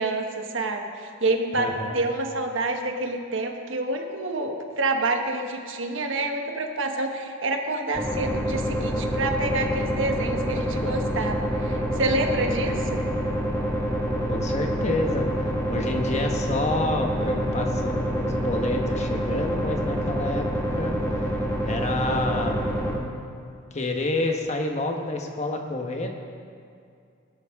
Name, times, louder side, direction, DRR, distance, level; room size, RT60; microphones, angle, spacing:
voice 1, 0.0-1.7 1.9-13.0, right 2 dB, 70° right, 4 dB, 1.2 m, -28 dB
voice 2, 1.6-2.0 10.6-10.9 14.3-20.5 20.7-20.9 21.6-22.7 23.7-26.1, left 2 dB, 35° left, 3 dB, 1.1 m, -28 dB
sound 1, 7.9-23.0, equal, 15° left, 1.5 m, -27 dB
17.5 x 12.5 x 3.6 m, 2.4 s
head